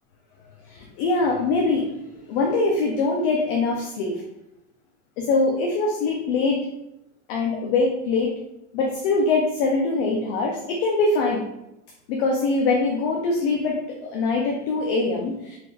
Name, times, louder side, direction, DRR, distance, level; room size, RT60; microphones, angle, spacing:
voice 1, 0.7-1.9 2.3-4.2 5.2-6.6 7.3-8.3 8.7-11.4 12.1-15.6, left 3 dB, 40° left, 0 dB, 0.4 m, -23 dB
4.2 x 2.4 x 3.2 m, 0.87 s
supercardioid pair, 165°, 45 cm